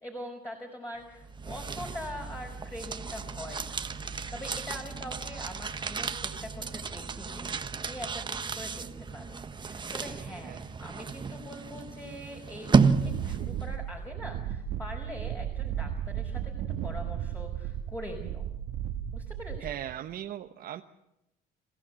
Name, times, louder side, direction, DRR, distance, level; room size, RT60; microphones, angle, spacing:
voice 1, 0.0-7.5 7.8-8.8 9.1-18.4 19.1-19.8, left 1 dB, 15° left, 1 dB, 5.3 m, -43 dB
sound 1, 1.1-13.6, right 5 dB, 25° right, 1.3 m, -32 dB
Wind, 12.8-20.0, right 10 dB, 85° right, 1.9 m, -35 dB
voice 2, 19.6-20.8, right 11 dB, 60° right, 5 dB, 1.1 m, -38 dB
28.0 x 15.5 x 8.3 m, 0.88 s
cardioid pair, 110°, 17 cm